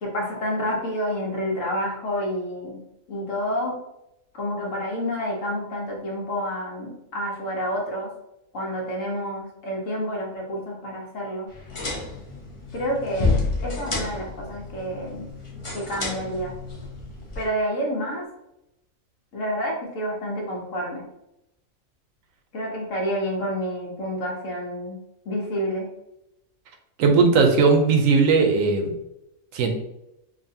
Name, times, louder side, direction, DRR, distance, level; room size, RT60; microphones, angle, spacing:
voice 1, 0.0-2.8 3.1-3.8 4.3-8.1 8.5-11.5 12.7-13.3 13.6-15.3 15.7-16.5 17.3-18.2 19.3-21.0 22.5-24.9 25.2-25.9, equal, 70° left, -2 dB, 1.3 m, -29 dB
sound 1, 11.5-17.5, left 3 dB, 30° left, 0.6 m, -30 dB
voice 2, 27.0-28.9 29.5-29.7, right 4 dB, 80° right, 4 dB, 1.1 m, -18 dB
5.1 x 2.5 x 2.7 m, 0.86 s
omnidirectional pair, 1.4 m